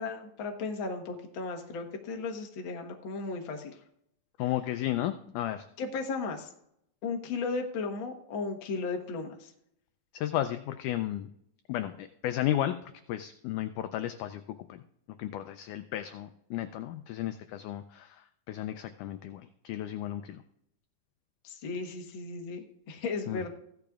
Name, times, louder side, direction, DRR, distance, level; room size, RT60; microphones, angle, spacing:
voice 1, 0.0-3.7 4.4-4.5 5.8-6.5 7.0-9.5 21.4-23.5, left 4 dB, 55° left, 2 dB, 1.3 m, -35 dB
voice 2, 4.4-5.7 10.1-11.3 11.7-14.4 14.7-14.8 15.2-20.4 23.3-23.5, left 12 dB, 85° left, 9 dB, 1.8 m, -34 dB
16.0 x 12.0 x 2.4 m, 0.74 s
omnidirectional pair, 4.2 m